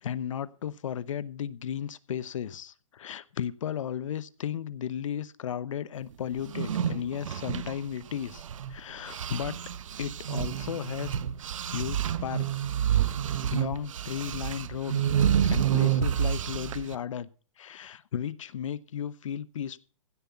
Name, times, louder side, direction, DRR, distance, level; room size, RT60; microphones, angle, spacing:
voice 1, 0.0-8.4 8.7-9.5 10.0-11.2 11.7-12.6 13.1-13.2 13.5-15.2 15.4-17.3 17.6-19.8, left 9 dB, 75° left, 0.8 m, -35 dB
sound 1, 6.4-8.8 9.1-17.0, right 9 dB, 75° right, 0.9 m, -29 dB
16.0 x 8.0 x 5.7 m
hypercardioid pair, 135°, 17 cm